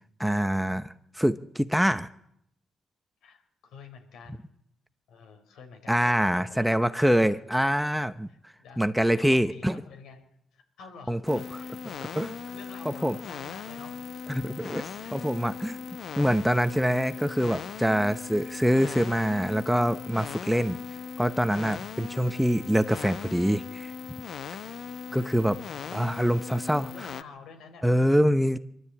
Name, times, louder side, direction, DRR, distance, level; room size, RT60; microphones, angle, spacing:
voice 1, 0.2-2.1 5.9-8.3 8.8-9.8 11.1-11.4 12.2-12.3 12.9-13.2 14.3-14.8 15.1-15.8 16.2-20.8 21.2-23.9 25.1-25.6 25.9-26.9 27.8-28.6, equal, ahead, 11 dB, 0.8 m, -25 dB
voice 2, 3.2-4.5 5.1-6.8 7.1-7.4 8.3-14.3 15.0-15.4 21.8-22.3 25.1-26.3 26.7-27.9 28.4-28.6, left 5 dB, 80° left, 5 dB, 4.2 m, -50 dB
sound 1, 11.3-27.2, left 6 dB, 60° left, 0.8 m, -39 dB
24.0 x 12.5 x 8.6 m, 0.76 s
cardioid pair, 90°, 0 cm